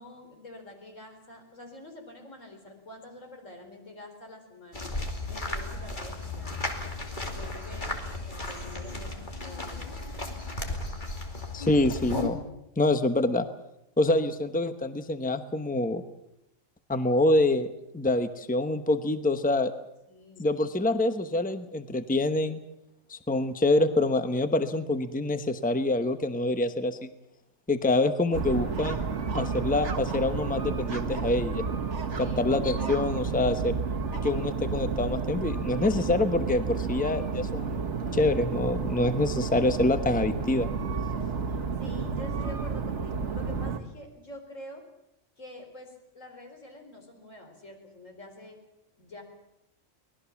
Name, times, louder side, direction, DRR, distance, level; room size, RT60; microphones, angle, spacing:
voice 1, 0.0-4.9 5.3-6.6 7.3-10.3 20.1-20.6 32.2-32.4 41.8-44.8 45.4-48.6 49.0-49.2, left 1 dB, 85° left, 3 dB, 4.7 m, -46 dB
sound 1, 4.7-12.3, left 2 dB, 40° left, 2.8 m, -35 dB
voice 2, 11.5-12.4 12.8-13.5 14.0-16.0 16.9-17.7 17.9-19.7 20.4-22.6 23.1-27.1 27.7-29.0 29.3-31.6 32.2-33.8 34.2-37.9 38.1-40.7, left 2 dB, 5° left, 10 dB, 1.0 m, -26 dB
sound 2, 28.3-43.8, right 5 dB, 65° right, 1.8 m, -31 dB
24.0 x 19.0 x 7.2 m, 0.85 s
omnidirectional pair, 1.3 m